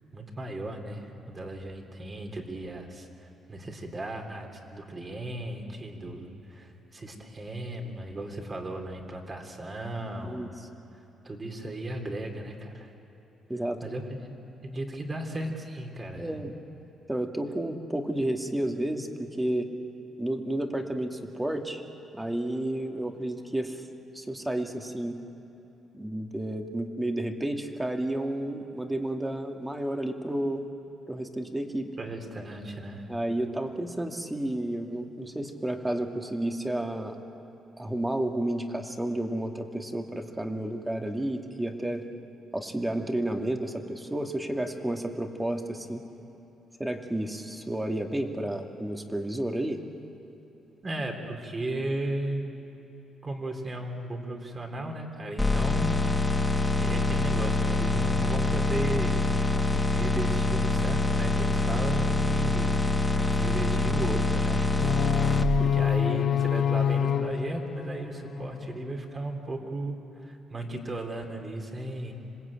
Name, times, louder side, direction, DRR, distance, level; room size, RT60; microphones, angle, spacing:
voice 1, 0.1-3.1 3.5-10.4 11.2-12.9 13.8-14.3 14.6-16.3 32.0-33.1 50.8-52.5 53.2-56.4 56.8-59.2 59.9-62.7 63.3-64.7 65.6-72.1, right 1 dB, 30° right, 2 dB, 3.8 m, -35 dB
voice 2, 13.5-13.8 16.2-16.5 17.1-19.7 20.2-21.8 22.1-23.8 24.1-25.2 25.9-30.7 31.1-31.9 33.1-37.2 37.8-42.0 42.5-46.0 46.8-49.8 65.6-65.7, right 1 dB, 10° right, 4 dB, 2.3 m, -31 dB
sound 1, 55.4-65.4, left 3 dB, 10° left, 1.9 m, -25 dB
sound 2, 64.8-68.8, left 9 dB, 60° left, 0.8 m, -27 dB
27.0 x 20.0 x 9.0 m, 3.0 s
cardioid pair, 90°, 0 cm